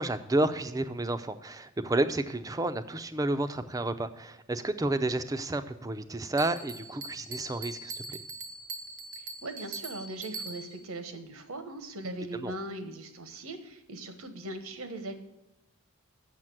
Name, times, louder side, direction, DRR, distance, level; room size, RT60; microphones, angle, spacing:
voice 1, 0.0-8.2 12.3-12.5, right 2 dB, 15° right, 11 dB, 0.4 m, -31 dB
Bell, 6.4-10.9, right 3 dB, 70° right, 0.8 m, -41 dB
voice 2, 9.2-15.1, right 2 dB, 85° right, 8 dB, 1.2 m, -40 dB
7.5 x 6.7 x 7.8 m, 0.93 s
head